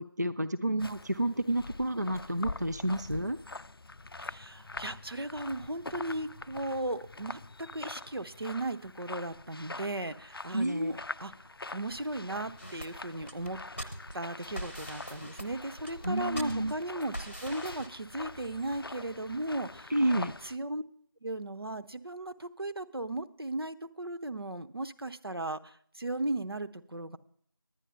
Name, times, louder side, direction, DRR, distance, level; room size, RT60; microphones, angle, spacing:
voice 1, 0.0-3.4 10.5-10.9 16.0-16.7 19.9-20.3, right 1 dB, 45° right, 10 dB, 0.4 m, -30 dB
sound 1, 0.8-20.6, left 2 dB, 70° left, 0.4 m, -45 dB
voice 2, 4.2-11.3 11.7-13.6 14.1-20.1 20.4-20.8 21.2-27.2, right 1 dB, 80° right, 9 dB, 0.7 m, -36 dB
sound 2, 12.6-17.9, equal, 30° left, 0.8 m, -42 dB
9.9 x 9.9 x 5.5 m, 0.62 s
figure-of-eight pair, 180°, 12 cm